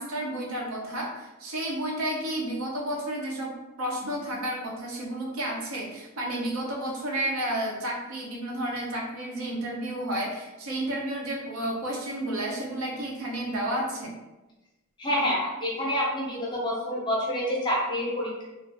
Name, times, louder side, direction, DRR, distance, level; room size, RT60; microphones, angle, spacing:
voice 1, 0.0-14.2, right 1 dB, 75° right, -1 dB, 0.6 m, -31 dB
voice 2, 15.0-18.4, equal, 20° left, -4 dB, 0.5 m, -27 dB
2.4 x 2.3 x 2.5 m, 1.1 s
head